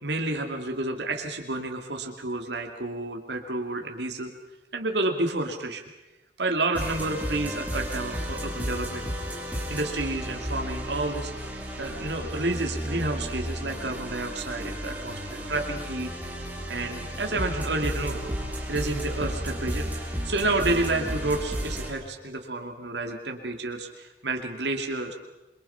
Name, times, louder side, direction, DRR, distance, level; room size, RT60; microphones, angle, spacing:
voice 1, 0.0-4.3 4.7-5.8 6.4-9.1 9.5-11.3 11.8-16.4 16.7-18.2 18.7-19.9 20.2-25.1, right 2 dB, 80° right, 3 dB, 2.3 m, -30 dB
sound 1, 6.7-21.9, equal, 10° right, 3.5 m, -33 dB
28.0 x 23.0 x 5.7 m, 1.1 s
head